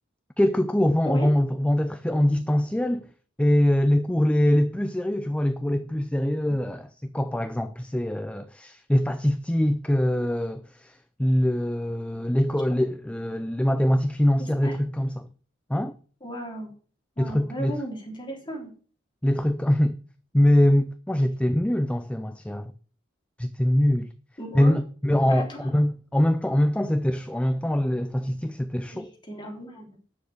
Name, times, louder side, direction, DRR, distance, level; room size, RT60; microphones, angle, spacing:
voice 1, 0.4-3.1 3.4-15.3 15.7-16.0 17.2-17.8 19.2-20.0 20.3-22.7 23.4-24.1 24.5-29.1, left 1 dB, 5° left, 0.5 m, -23 dB
voice 2, 16.2-16.7 17.2-18.7 24.4-24.8 25.3-25.8 28.9-29.9, equal, 25° left, 3.6 m, -36 dB
9.4 x 6.8 x 6.4 m
head